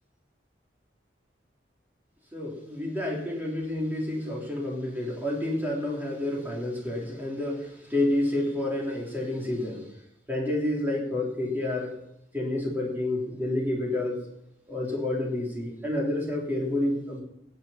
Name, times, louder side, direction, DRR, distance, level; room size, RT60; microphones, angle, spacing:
voice 1, 2.3-9.9 10.3-11.9 12.3-14.2 14.7-17.2, left 1 dB, 10° right, -3 dB, 3.5 m, -29 dB
16.0 x 7.4 x 5.9 m, 0.80 s
head